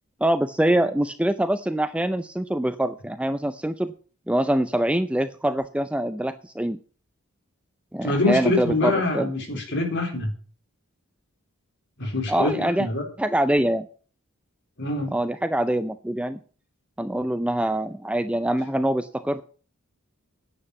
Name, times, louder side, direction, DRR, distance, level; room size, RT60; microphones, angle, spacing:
voice 1, 0.2-3.9 4.3-6.8 7.9-9.3 12.3-12.9 13.2-13.9 15.1-16.4 17.0-19.4, right 1 dB, 5° right, 11 dB, 0.5 m, -24 dB
voice 2, 8.0-10.3 12.0-13.0 14.8-15.1, left 2 dB, 55° left, 3 dB, 3.8 m, -25 dB
9.9 x 7.8 x 8.1 m, 0.41 s
head